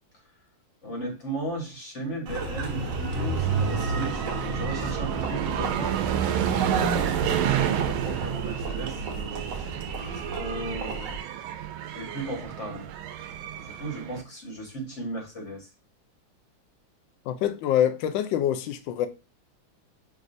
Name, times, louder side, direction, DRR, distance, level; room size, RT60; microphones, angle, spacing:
voice 1, 0.8-6.2 6.5-9.4 10.3-11.1 11.9-12.9 13.5-15.7, right 2 dB, 40° left, 1.5 m, -36 dB
Engine, 2.3-11.2, right 4 dB, 65° right, 1.4 m, -31 dB
sound 1, 3.2-14.2, right 10 dB, 85° right, 1.4 m, -30 dB
voice 2, 17.3-19.1, left 10 dB, 75° left, 1.3 m, -25 dB
6.1 x 2.6 x 2.6 m
omnidirectional pair, 2.2 m